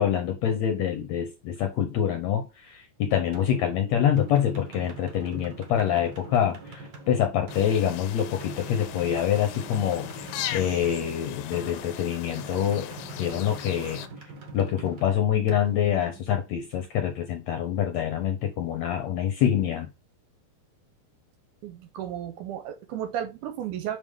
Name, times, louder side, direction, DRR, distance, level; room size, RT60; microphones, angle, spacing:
voice 1, 0.0-12.9 13.2-14.0 14.5-19.9, left 9 dB, 75° left, 1.7 m, -26 dB
sound 1, 3.3-16.9, right 2 dB, 60° right, 1.1 m, -44 dB
sound 2, 7.5-14.1, left 11 dB, 90° left, 2.3 m, -38 dB
voice 2, 21.6-24.0, right 10 dB, 75° right, 2.0 m, -33 dB
5.4 x 5.1 x 3.6 m
omnidirectional pair, 4.0 m